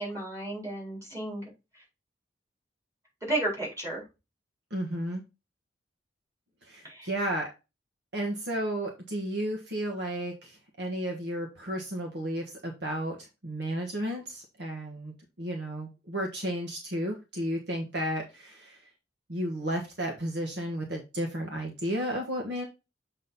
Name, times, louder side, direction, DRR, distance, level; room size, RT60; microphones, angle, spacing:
voice 1, 0.0-1.8 3.2-4.0 6.8-7.1, right 1 dB, 15° right, -3 dB, 4.4 m, -33 dB
voice 2, 4.7-5.2 6.6-7.5 8.1-18.9 19.3-22.6, equal, 60° right, 1 dB, 1.4 m, -33 dB
7.4 x 4.1 x 4.1 m, 0.27 s
head